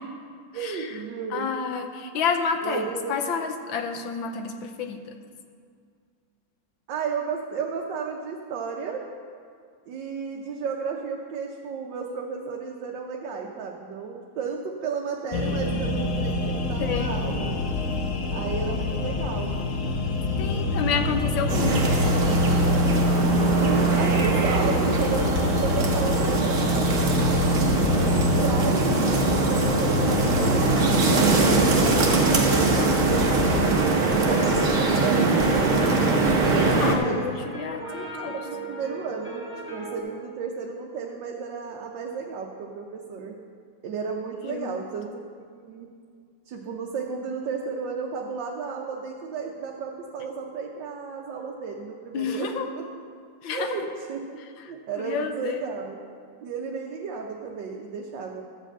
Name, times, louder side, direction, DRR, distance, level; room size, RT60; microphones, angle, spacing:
voice 1, 0.5-1.5 2.6-3.2 6.9-9.0 9.9-17.6 18.3-19.5 20.4-21.3 21.7-21.8 23.6-27.7 28.1-35.7 36.3-43.4 43.8-45.2 45.6-45.9 46.5-52.9 53.5-54.4 54.6-56.0 56.4-58.4, right 5 dB, 75° right, 0 dB, 1.5 m, -33 dB
voice 2, 1.3-2.8 3.1-5.0 15.3-15.8 16.8-17.1 20.4-22.1 36.6-38.3 44.4-44.8 52.1-52.7 53.4-53.7 55.0-55.6, left 6 dB, 90° left, 6 dB, 1.6 m, -29 dB
sound 1, 15.3-33.7, left 2 dB, 55° left, 1.0 m, -25 dB
sound 2, 21.5-37.0, right 3 dB, 45° right, 1.4 m, -23 dB
sound 3, 33.8-40.0, equal, 5° right, 1.2 m, -36 dB
12.5 x 5.0 x 7.8 m, 2.1 s
omnidirectional pair, 2.1 m